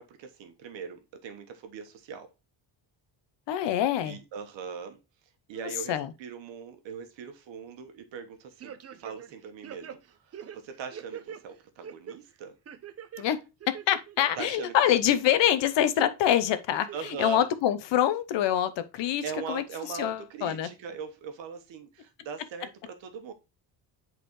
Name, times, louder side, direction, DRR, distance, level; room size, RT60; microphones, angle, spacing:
voice 1, 0.0-2.3 4.1-5.0 5.5-12.6 14.4-14.7 16.9-17.5 19.2-23.3, right 6 dB, 75° right, 1.3 m, -41 dB
voice 2, 3.5-4.2 5.9-6.1 13.2-19.6 20.0-20.7, left 11 dB, 70° left, 0.8 m, -25 dB
sound 1, 8.6-9.3 9.6-11.4 11.8-12.2 12.7-13.2 13.6-14.5 14.9-15.5 16.0-16.1 16.7-17.3 17.7-17.8, right 8 dB, 35° right, 0.6 m, -43 dB
7.7 x 4.1 x 3.1 m
cardioid pair, 125°, 45 cm